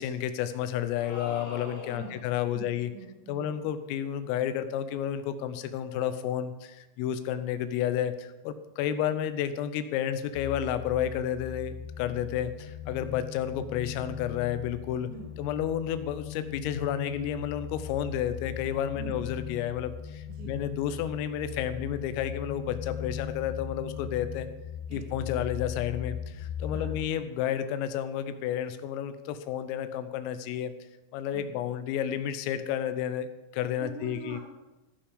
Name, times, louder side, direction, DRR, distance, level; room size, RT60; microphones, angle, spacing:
voice 1, 0.0-2.9 3.3-15.1 15.4-24.5 24.9-30.7 31.1-33.3 33.5-34.4, left 10 dB, 90° left, 11 dB, 3.4 m, -31 dB
sound 1, 1.0-2.4, left 3 dB, 55° left, 4.8 m, -42 dB
voice 2, 2.4-3.5 15.1-15.3 18.9-19.2 20.3-20.6 24.9-25.1 26.7-26.9 31.3-31.5 33.8-34.4, right 5 dB, 80° right, 0 dB, 1.7 m, -44 dB
sound 2, 10.3-27.1, left 8 dB, 75° left, 3.1 m, -39 dB
16.0 x 5.7 x 5.0 m, 1.1 s
omnidirectional pair, 5.8 m